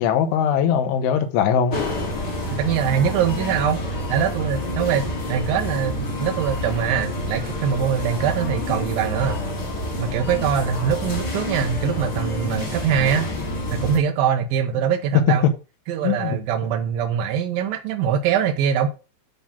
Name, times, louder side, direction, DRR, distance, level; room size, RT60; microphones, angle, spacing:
voice 1, 0.0-1.8 16.0-16.4, left 8 dB, 80° left, 3.6 m, -21 dB
sound 1, 1.7-14.0, left 1 dB, 35° left, 1.7 m, -28 dB
voice 2, 2.5-5.0 5.3-9.4 10.0-13.3 13.7-15.5 15.9-18.9, right 8 dB, 80° right, 2.1 m, -23 dB
9.8 x 3.8 x 7.0 m
omnidirectional pair, 5.4 m